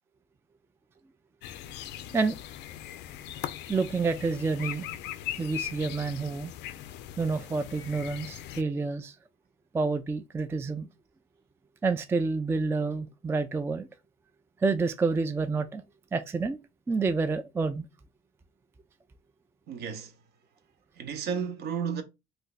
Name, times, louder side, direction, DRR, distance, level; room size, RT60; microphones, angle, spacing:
sound 1, 1.4-8.6, left 12 dB, 65° left, 0.4 m, -40 dB
voice 1, 3.7-4.9 5.4-6.5 7.2-9.2 9.7-10.9 11.8-13.9 14.6-15.8 16.1-16.6 16.9-17.8, right 4 dB, 15° right, 0.3 m, -28 dB
voice 2, 19.7-20.3 20.9-22.0, right 7 dB, 60° right, 0.7 m, -33 dB
2.5 x 2.2 x 3.9 m
supercardioid pair, 80°, 19 cm